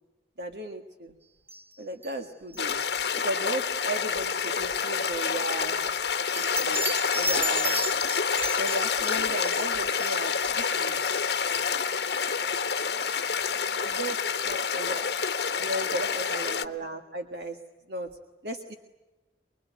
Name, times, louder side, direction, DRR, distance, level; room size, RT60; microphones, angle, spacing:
voice 1, 0.4-1.1 1.8-2.8 3.2-5.8 6.4-6.9 7.1-7.8 8.1-8.2 8.6-11.0 13.8-15.1 15.6-17.6 17.9-18.1 18.4-18.8, right 1 dB, 65° right, 5 dB, 1.7 m, -35 dB
sound 1, 1.5-1.7 2.0-2.2 2.5-2.6 6.3-12.2 12.5-12.7 13.0-13.1 13.5-13.6, right 1 dB, 15° right, 1.0 m, -35 dB
sound 2, 2.6-16.6, left 6 dB, 70° left, 1.2 m, -28 dB
voice 2, 10.7-11.2 11.6-11.8 12.2-15.3 16.0-16.6, right 1 dB, 40° right, 4 dB, 4.1 m, -50 dB
25.0 x 22.5 x 9.3 m, 1.1 s
head